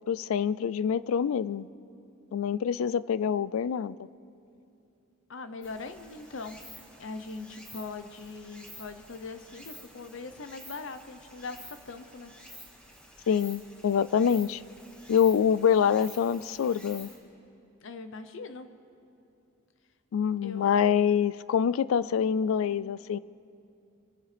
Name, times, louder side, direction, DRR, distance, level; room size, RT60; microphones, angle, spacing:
voice 1, 0.1-1.7 2.3-4.0 13.3-14.6 15.1-17.1 20.1-23.2, left 7 dB, 90° left, 19 dB, 0.3 m, -25 dB
voice 2, 5.3-12.3 17.8-18.7 20.4-20.7, left 3 dB, 70° left, 10 dB, 0.8 m, -41 dB
Stream, 5.6-17.2, equal, 5° left, 1.8 m, -50 dB
26.0 x 15.0 x 3.4 m, 2.6 s
head